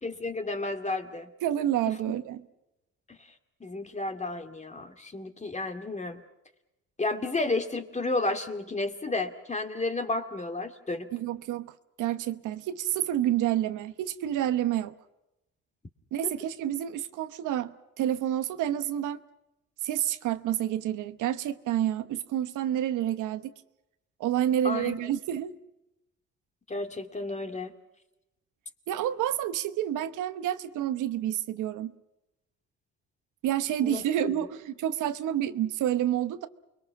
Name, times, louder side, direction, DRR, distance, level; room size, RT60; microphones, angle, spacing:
voice 1, 0.0-1.3 1.9-2.0 3.6-6.2 7.0-11.1 24.6-25.0 26.7-27.7 33.8-34.3, left 2 dB, 25° left, 2.2 m, -32 dB
voice 2, 1.4-2.4 11.1-11.7 12.0-14.9 16.1-19.2 19.8-23.5 24.2-25.6 28.9-31.9 33.4-36.5, right 11 dB, 85° right, 1.1 m, -29 dB
29.0 x 22.0 x 6.0 m
cardioid pair, 90°, 30 cm